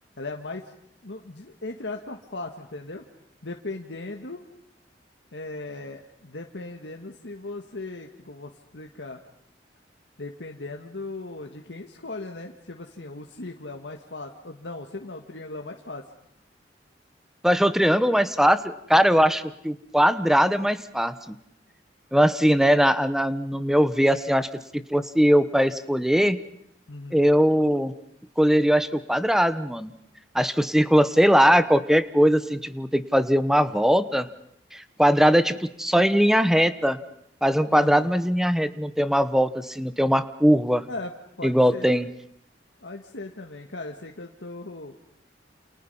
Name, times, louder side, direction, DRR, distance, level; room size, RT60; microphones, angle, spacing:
voice 1, 0.2-0.7 1.0-3.0 3.4-4.4 5.3-9.2 10.2-16.0 26.9-27.3 37.7-38.1 40.9-41.9 42.8-44.9, left 2 dB, 90° left, 3 dB, 1.7 m, -38 dB
voice 2, 17.4-21.3 22.1-24.5 24.9-26.4 27.1-27.9 28.4-29.9 30.3-34.3 34.7-37.0 37.4-40.8 41.4-42.1, equal, 5° right, 13 dB, 1.0 m, -20 dB
29.0 x 29.0 x 5.6 m, 0.73 s
head